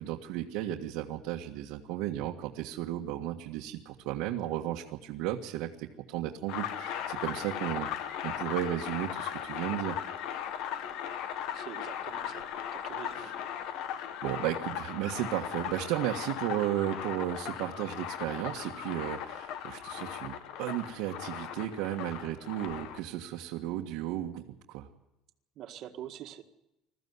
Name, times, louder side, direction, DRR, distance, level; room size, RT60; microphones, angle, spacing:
voice 1, 0.0-10.0 13.1-13.5 14.2-24.9, right 13 dB, 75° right, -1 dB, 1.7 m, -34 dB
sound 1, 6.5-23.0, left 9 dB, 60° left, 1.6 m, -38 dB
voice 2, 11.5-13.3 25.6-26.4, right 11 dB, 45° right, 6 dB, 1.8 m, -45 dB
21.0 x 14.5 x 9.6 m, 0.93 s
cardioid pair, 170°, 0 cm